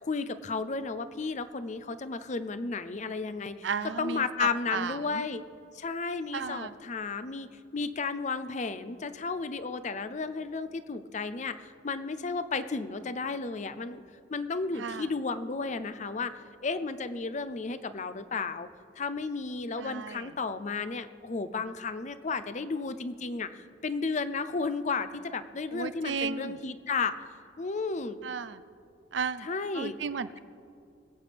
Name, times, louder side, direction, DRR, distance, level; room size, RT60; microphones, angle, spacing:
voice 1, 0.0-3.7 4.0-5.4 5.7-7.5 7.7-14.0 14.3-16.3 16.6-18.7 19.0-27.1 27.6-28.2 29.4-30.0, left 4 dB, 40° left, 12 dB, 0.5 m, -33 dB
voice 2, 3.6-5.2 6.3-6.7 14.8-15.1 19.8-20.4 25.7-26.6 28.2-28.6 29.1-29.5 29.7-30.4, right 5 dB, 75° right, 14 dB, 0.5 m, -34 dB
23.5 x 8.4 x 3.4 m, 2.4 s
head